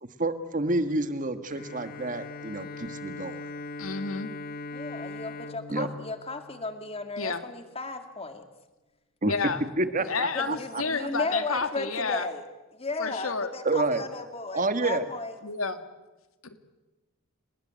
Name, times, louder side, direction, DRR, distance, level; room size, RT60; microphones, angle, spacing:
voice 1, 0.0-3.4 5.7-5.9 9.2-9.3 9.8-11.1 13.7-14.1 14.5-15.1, right 2 dB, 40° right, 10 dB, 1.7 m, -29 dB
Bowed string instrument, 1.5-7.2, left 3 dB, 45° left, 1.0 m, -40 dB
voice 2, 3.8-4.3 7.2-7.4 9.2-9.6 10.0-12.3 13.0-13.5 15.4-15.8 16.4-16.6, left 4 dB, 80° left, 9 dB, 1.9 m, -30 dB
voice 3, 4.7-8.5 10.3-12.4 12.7-15.3, left 3 dB, 30° left, 7 dB, 2.4 m, -35 dB
29.5 x 19.0 x 9.1 m, 1.1 s
head